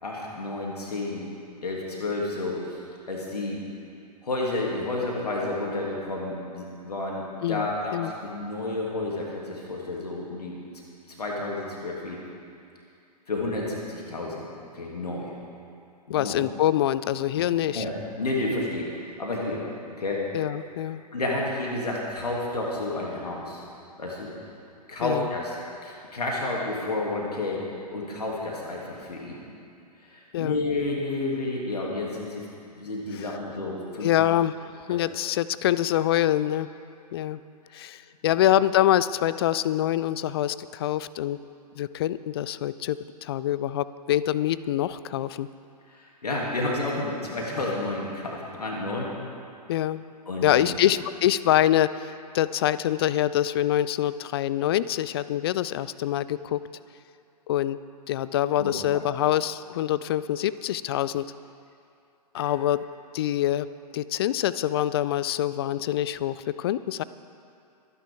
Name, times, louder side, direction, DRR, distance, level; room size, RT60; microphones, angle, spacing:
voice 1, 0.0-1.3 1.6-2.8 3.1-3.6 4.2-10.5 11.1-12.2 13.3-14.4 14.7-15.3 16.1-16.4 17.4-17.5 17.7-18.9 19.2-19.6 20.0-20.3 21.1-23.6 24.0-24.3 24.9-25.6 25.8-27.6 27.9-29.4 30.1-32.5 32.7-34.1 34.9-35.0 38.2-38.3 45.9-49.1 50.3-50.7 58.6-59.0 62.3-62.4, left 2 dB, 70° left, -3 dB, 2.5 m, -30 dB
voice 2, 7.4-8.1 16.1-17.8 20.3-21.0 25.0-25.3 30.3-30.6 33.2-33.3 34.0-36.7 37.1-37.4 37.7-41.4 41.8-45.5 49.7-50.0 50.4-56.6 57.5-57.8 58.1-61.3 62.3-62.8 63.1-63.7 63.9-67.0, left 12 dB, 35° left, 16 dB, 0.4 m, -25 dB
25.5 x 10.0 x 3.5 m, 2.5 s
figure-of-eight pair, 115°, 21 cm